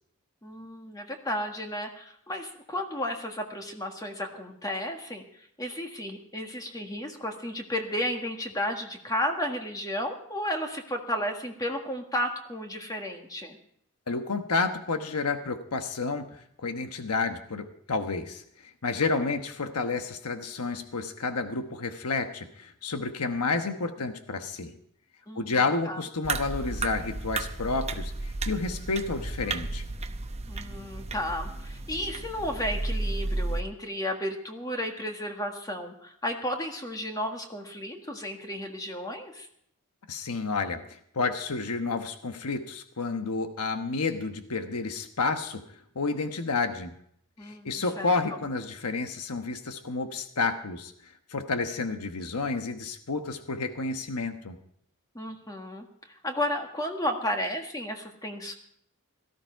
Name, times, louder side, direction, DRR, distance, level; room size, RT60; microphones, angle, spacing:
voice 1, 0.4-5.2 5.6-13.6 25.3-25.6 25.8-26.0 30.5-39.5 47.4-48.4 55.1-58.5, left 1 dB, 15° left, 3 dB, 1.7 m, -33 dB
voice 2, 14.1-24.7 25.3-29.8 40.1-40.8 41.1-45.6 45.9-46.9 47.5-50.9 51.3-54.6, left 4 dB, 85° left, 7 dB, 1.1 m, -30 dB
sound 1, 26.2-33.6, right 2 dB, 30° right, 0.8 m, -33 dB
17.5 x 13.5 x 4.6 m, 0.68 s
head